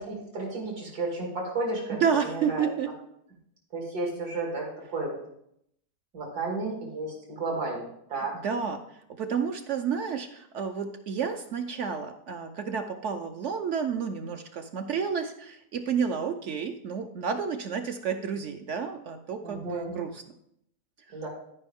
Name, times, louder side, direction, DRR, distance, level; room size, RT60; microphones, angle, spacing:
voice 1, 0.0-2.7 3.7-5.2 6.1-8.4 19.4-20.0 21.1-21.3, right 2 dB, 80° right, -2 dB, 3.0 m, -33 dB
voice 2, 1.9-2.9 8.3-20.2, right 6 dB, 65° right, 6 dB, 0.8 m, -30 dB
13.0 x 5.3 x 3.5 m, 0.74 s
omnidirectional pair, 1.7 m